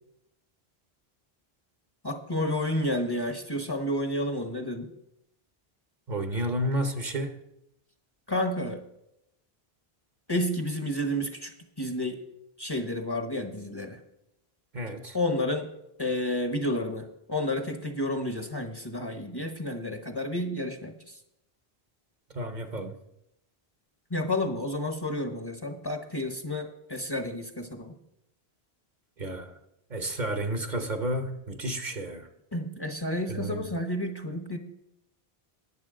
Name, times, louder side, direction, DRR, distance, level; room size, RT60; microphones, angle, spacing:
voice 1, 2.0-4.9 8.3-8.8 10.3-12.2 12.6-14.0 15.1-15.7 16.0-21.2 24.1-28.0 32.5-34.6, left 1 dB, 25° left, 5 dB, 0.9 m, -30 dB
voice 2, 6.1-7.4 14.7-15.2 22.3-23.0 29.2-29.6 29.9-32.3 33.3-33.7, right 1 dB, 50° right, 7 dB, 1.0 m, -31 dB
20.5 x 7.3 x 3.7 m, 0.83 s
omnidirectional pair, 1.0 m